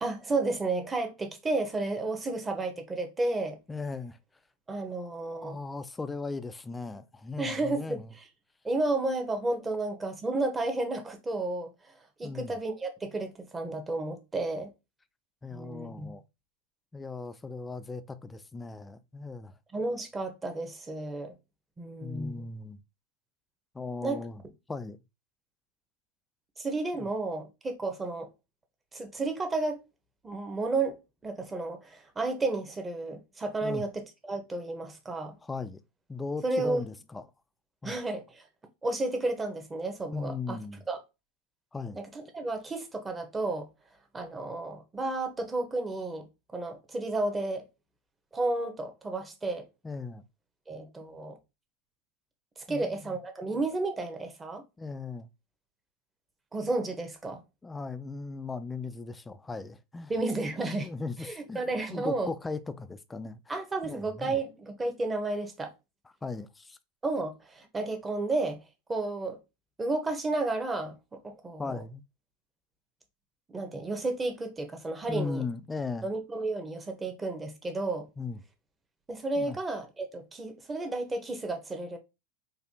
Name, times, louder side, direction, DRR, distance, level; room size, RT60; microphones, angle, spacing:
voice 1, 0.0-3.6 4.7-5.6 7.4-8.2 8.6-11.9 12.2-14.7 15.5-16.1 19.7-21.3 21.8-22.4 24.0-24.3 26.6-28.3 28.9-29.8 30.2-35.3 36.4-36.8 37.8-38.4 38.8-40.6 40.9-41.0 42.0-43.7 44.1-46.3 46.5-47.6 48.3-49.6 50.7-51.4 52.6-54.6 56.5-57.4 60.1-60.9 61.2-62.3 63.5-65.7 67.0-68.6 68.9-69.4 69.8-70.9 71.2-71.8 73.5-75.4 76.0-78.1 79.1-82.0, right 2 dB, 15° right, 0.9 m, -32 dB
voice 2, 3.7-4.2 5.4-8.1 12.2-12.6 15.4-16.2 16.9-19.5 22.0-22.8 23.7-24.4 24.7-25.0 33.6-33.8 35.4-35.8 36.1-37.3 37.8-37.9 40.1-40.8 41.7-42.0 49.8-50.2 52.7-53.2 54.8-55.3 57.6-60.1 60.8-61.6 61.9-63.4 63.8-64.4 66.2-66.8 71.6-72.0 75.1-76.1 78.2-78.4 79.4-79.6, left 4 dB, 15° left, 0.4 m, -37 dB
4.1 x 2.7 x 2.7 m
hypercardioid pair, 100°, 0 cm